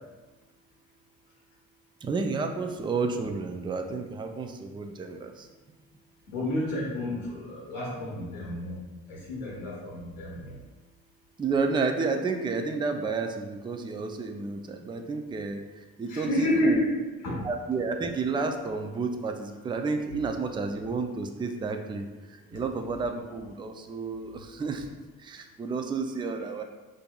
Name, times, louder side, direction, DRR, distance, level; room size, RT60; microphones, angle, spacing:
voice 1, 2.0-5.5 11.4-16.8 17.4-24.9 25.2-26.6, right 4 dB, 15° right, 5 dB, 0.3 m, -31 dB
voice 2, 6.3-7.2 7.7-8.7 9.3-10.3 16.1-16.9 17.2-17.4, left 1 dB, 85° left, -4 dB, 0.8 m, -29 dB
5.1 x 2.5 x 2.3 m, 1.2 s
hypercardioid pair, 45°, 42 cm